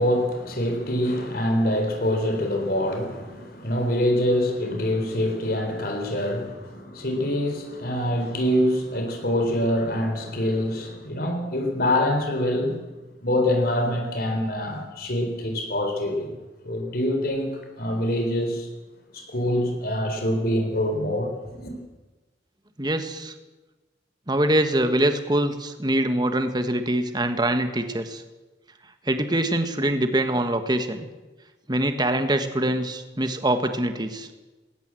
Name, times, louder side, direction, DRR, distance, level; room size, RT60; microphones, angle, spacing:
voice 1, 0.0-12.8 13.2-16.4 16.6-18.7 19.1-21.7, left 1 dB, 55° left, 4 dB, 3.9 m, -25 dB
voice 2, 22.8-23.3 24.3-28.2 29.0-31.0 31.7-34.3, right 1 dB, 25° right, 8 dB, 1.5 m, -24 dB
20.0 x 18.5 x 7.8 m, 1.2 s
head